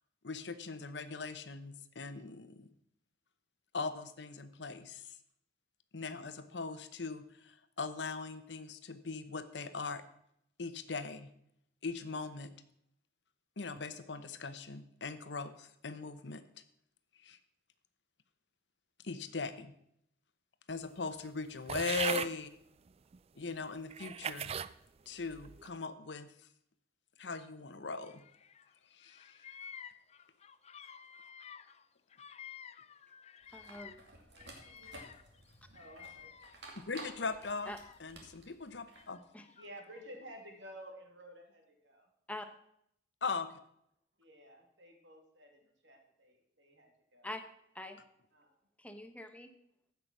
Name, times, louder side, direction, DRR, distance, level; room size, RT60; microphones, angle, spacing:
voice 1, 0.2-2.7 3.7-5.2 5.9-10.0 10.6-11.3 11.8-12.5 13.6-16.4 17.2-17.4 19.0-19.7 20.7-22.5 23.3-24.5 25.1-26.3 27.2-28.2 28.9-29.4 36.9-37.7 38.0-39.2 43.2-43.5, left 4 dB, 70° left, 11 dB, 0.9 m, -40 dB
sound 1, 21.7-22.3 23.1-23.2 23.9-24.7 25.3-25.7, right 7 dB, 35° right, 0.4 m, -37 dB
Bird vocalization bird call bird song, 28.0-28.7 29.0-34.1 34.4-36.8 37.2-38.2 38.9-40.0, left 8 dB, 35° left, 0.5 m, -53 dB
sound 2, 33.4-39.1, right 2 dB, 70° right, 2.5 m, -54 dB
voice 2, 33.5-34.0 37.7-37.8 39.3-39.4 42.3-42.5 47.2-47.4 47.7-48.0 48.8-49.5, left 1 dB, 10° left, 7 dB, 0.9 m, -44 dB
voice 3, 34.3-35.0 35.7-36.3 39.6-42.1 44.2-45.5 45.8-47.3 48.3-48.5, equal, 90° right, 3 dB, 2.5 m, -53 dB
15.0 x 5.9 x 6.1 m, 0.73 s
head